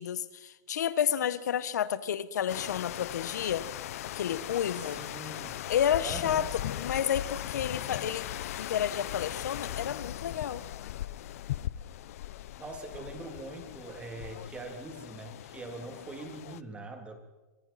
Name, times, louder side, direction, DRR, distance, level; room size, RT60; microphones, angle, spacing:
voice 1, 0.0-3.6 4.1-5.0 5.7-6.5 6.7-8.3 8.6-10.6, left 9 dB, 75° left, 15 dB, 1.4 m, -30 dB
sound 1, 2.5-16.6, left 13 dB, 55° left, 0.8 m, -39 dB
voice 2, 4.7-5.6 6.0-6.9 12.6-17.2, right 2 dB, 10° right, 4 dB, 3.1 m, -43 dB
28.0 x 24.0 x 4.4 m, 1.2 s
hypercardioid pair, 150°, 9 cm